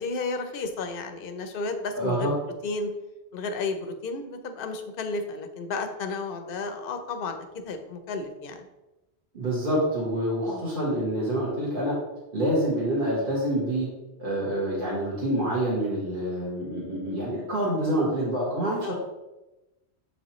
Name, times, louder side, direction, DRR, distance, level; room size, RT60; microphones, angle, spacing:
voice 1, 0.0-2.3 2.6-2.9 3.3-8.7 10.5-10.6 18.8-18.9, left 3 dB, 60° left, 7 dB, 0.8 m, -32 dB
voice 2, 1.9-2.3 9.3-11.9 12.3-13.9 14.2-18.9, right 1 dB, 50° right, -7 dB, 1.7 m, -27 dB
7.2 x 5.1 x 3.0 m, 1.0 s
omnidirectional pair, 1.1 m